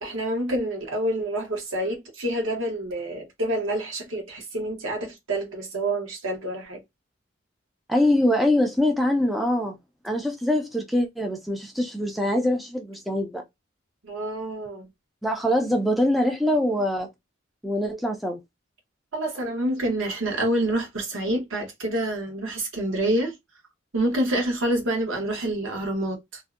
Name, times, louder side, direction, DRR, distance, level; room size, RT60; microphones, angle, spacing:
voice 1, 0.0-6.8 14.0-14.9 19.1-23.3 23.9-26.4, right 1 dB, 75° right, 0.9 m, -27 dB
voice 2, 7.9-9.8 10.0-13.4 15.2-17.1 17.6-18.4, left 1 dB, ahead, 0.3 m, -23 dB
2.6 x 2.0 x 2.3 m
head